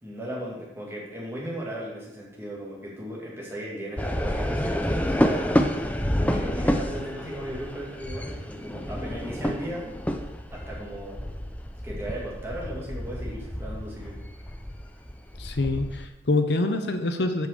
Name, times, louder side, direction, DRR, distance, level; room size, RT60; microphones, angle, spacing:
voice 1, 0.0-5.8 6.1-9.8 10.5-11.2 11.8-14.2, equal, 15° right, -4 dB, 2.2 m, -36 dB
sound 1, 4.0-16.1, equal, 10° left, 0.5 m, -29 dB
voice 2, 15.4-17.5, left 2 dB, 70° left, 7 dB, 0.7 m, -25 dB
8.2 x 5.3 x 6.7 m, 1.0 s
head